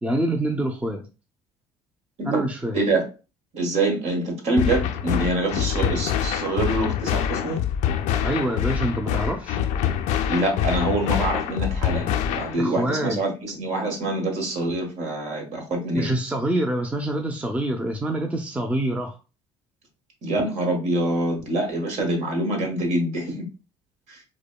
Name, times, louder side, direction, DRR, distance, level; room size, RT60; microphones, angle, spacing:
voice 1, 0.0-1.0 2.3-2.7 8.2-9.6 12.6-13.2 15.9-19.2, right 1 dB, 10° right, 4 dB, 0.6 m, -26 dB
voice 2, 3.5-7.6 10.3-16.1 20.2-23.5 24.1-24.2, right 2 dB, 60° right, 1 dB, 1.5 m, -25 dB
sound 1, 4.6-12.6, left 9 dB, 65° left, 0.5 m, -25 dB
4.9 x 2.1 x 2.3 m, 0.32 s
hypercardioid pair, 65°, 13 cm